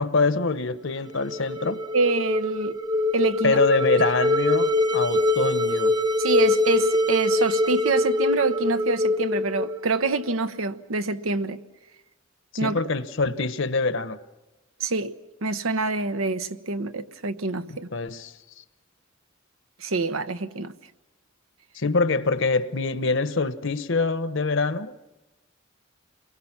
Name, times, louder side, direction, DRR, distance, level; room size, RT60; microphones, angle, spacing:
voice 1, 0.0-1.8 3.4-5.9 12.6-14.2 17.7-18.6 21.7-25.0, left 3 dB, 65° left, 1.1 m, -25 dB
sound 1, 1.1-10.3, left 2 dB, 20° right, 0.9 m, -24 dB
voice 2, 1.9-2.8 3.1-3.6 6.2-11.6 12.6-12.8 14.8-15.1 15.4-17.9 19.8-20.7, right 3 dB, 80° right, 1.1 m, -26 dB
29.5 x 22.0 x 6.0 m
head